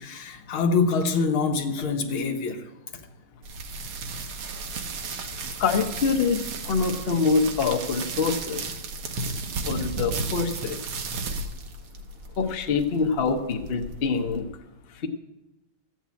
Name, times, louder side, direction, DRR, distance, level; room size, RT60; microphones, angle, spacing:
voice 1, 0.0-3.0, left 4 dB, 85° left, 1.9 m, -25 dB
sound 1, 3.4-14.4, right 3 dB, 85° right, 2.0 m, -34 dB
voice 2, 5.6-8.6 9.6-10.8 12.4-14.4, left 5 dB, 45° left, 0.8 m, -25 dB
14.5 x 6.1 x 8.3 m
omnidirectional pair, 2.2 m